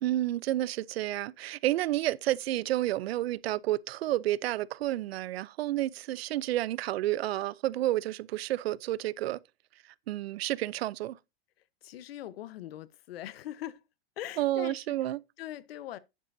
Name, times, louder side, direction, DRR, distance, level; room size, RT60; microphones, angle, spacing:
voice 1, 0.0-9.4 10.1-11.2 14.4-15.2, right 14 dB, 85° right, 0.7 m, -30 dB
voice 2, 11.8-13.8 14.2-16.0, left 12 dB, 80° left, 1.1 m, -42 dB
10.0 x 10.0 x 2.7 m
supercardioid pair, 165°, 30 cm